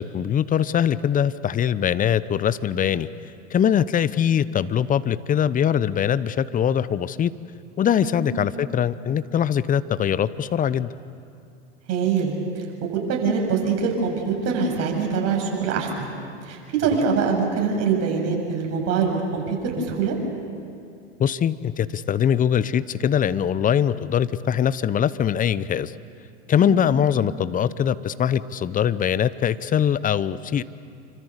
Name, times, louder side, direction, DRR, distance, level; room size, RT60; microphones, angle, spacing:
voice 1, 0.0-3.1 3.5-7.3 7.8-10.9 21.2-25.9 26.5-30.6, left 9 dB, 25° left, 16 dB, 0.9 m, -22 dB
voice 2, 11.9-16.1 16.5-20.2 26.6-26.9, right 5 dB, 45° right, 1 dB, 7.6 m, -24 dB
28.5 x 25.0 x 8.2 m, 2.5 s
hypercardioid pair, 100°, 35 cm